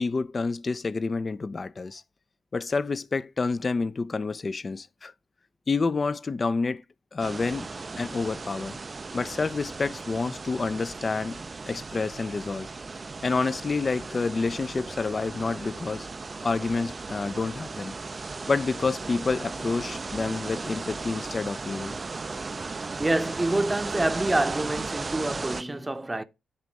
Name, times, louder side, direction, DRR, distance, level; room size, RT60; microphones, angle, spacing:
voice 1, 0.0-2.0 2.5-5.1 5.7-6.8 7.1-7.7 8.0-8.8 9.1-11.4 11.7-12.7 13.2-16.1 16.4-17.9 18.5-22.0, left 4 dB, 35° left, 0.5 m, -28 dB
sound 1, 7.2-25.6, right 3 dB, 35° right, 0.3 m, -36 dB
voice 2, 22.7-26.2, right 2 dB, 15° right, 0.7 m, -27 dB
9.7 x 3.6 x 5.2 m
cardioid pair, 75°, 0 cm